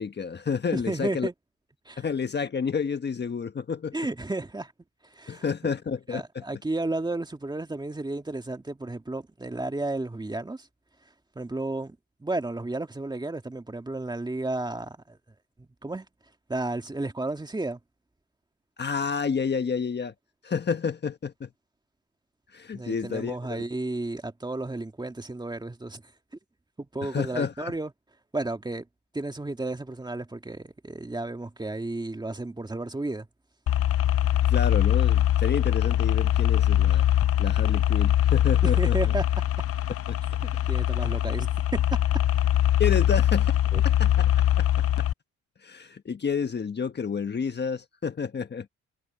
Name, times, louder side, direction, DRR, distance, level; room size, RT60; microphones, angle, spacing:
voice 1, 0.0-1.3 2.0-3.9 5.3-6.4 18.8-20.1 20.4-21.5 22.5-23.6 27.0-27.7 34.4-37.1 37.4-39.1 40.1-40.2 42.8-43.6 43.8-45.1 45.6-48.7, left 6 dB, 35° left, 1.4 m, -30 dB
voice 2, 0.7-1.3 1.9-2.0 3.9-4.7 5.0-5.4 6.1-10.7 11.4-15.2 15.6-16.1 16.5-17.8 22.7-26.0 26.8-27.9 28.3-28.9 29.1-33.3 38.6-39.2 40.4-42.0 43.7-43.8, right 2 dB, 15° right, 1.9 m, -32 dB
sound 1, 33.7-45.1, left 12 dB, 50° left, 0.7 m, -22 dB
cardioid pair, 90°, 30 cm